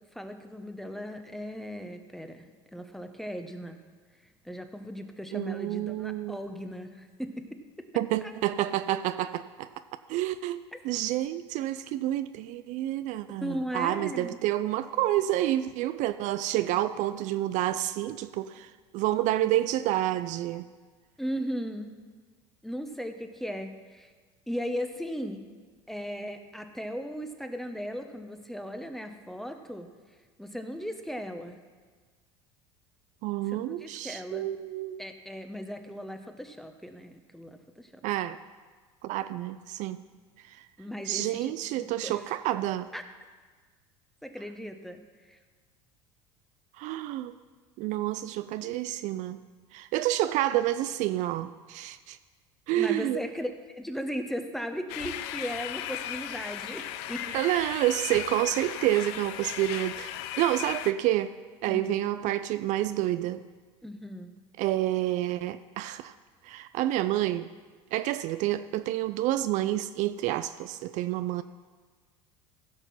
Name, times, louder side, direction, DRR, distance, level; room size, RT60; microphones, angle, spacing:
voice 1, 0.1-3.8 4.4-7.9 8.2-8.4 10.7-10.8 13.4-14.4 21.2-21.9 22.6-24.1 24.5-25.4 25.9-29.9 30.4-31.6 33.5-34.5 35.0-37.9 40.8-42.2 42.9-43.0 44.2-45.0 45.3-45.4 52.7-57.4 61.7-62.0 63.8-64.3, equal, ahead, 7 dB, 1.1 m, -37 dB
voice 2, 5.3-6.4 8.0-9.7 10.1-20.6 33.2-35.0 38.0-38.4 39.0-40.0 40.5-40.7 41.1-42.9 46.8-47.3 47.8-49.4 49.7-52.2 52.7-53.2 57.3-61.3 61.6-63.4 64.6-66.1 66.4-67.5 67.9-71.4, right 14 dB, 55° right, 12 dB, 0.4 m, -29 dB
sound 1, 54.9-60.9, left 12 dB, 70° left, 0.6 m, -36 dB
15.5 x 5.8 x 5.5 m, 1.5 s
hypercardioid pair, 80°, 15 cm